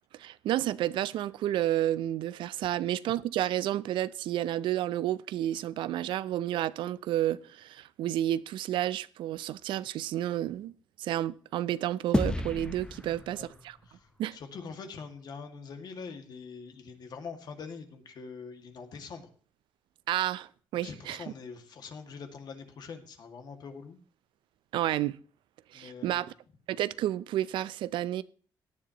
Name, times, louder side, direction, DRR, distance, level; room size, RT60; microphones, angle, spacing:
voice 1, 0.1-10.7 11.0-13.8 14.2-14.4 20.1-21.2 24.7-25.2 25.7-26.3 26.7-28.2, right 13 dB, 80° right, 0.5 m, -31 dB
sound 1, 12.1-14.7, left 1 dB, 10° left, 0.8 m, -33 dB
voice 2, 13.0-13.5 13.9-19.3 20.8-24.0 25.7-26.3, left 5 dB, 60° left, 2.0 m, -44 dB
17.0 x 10.0 x 3.0 m
cardioid pair, 90°, 8 cm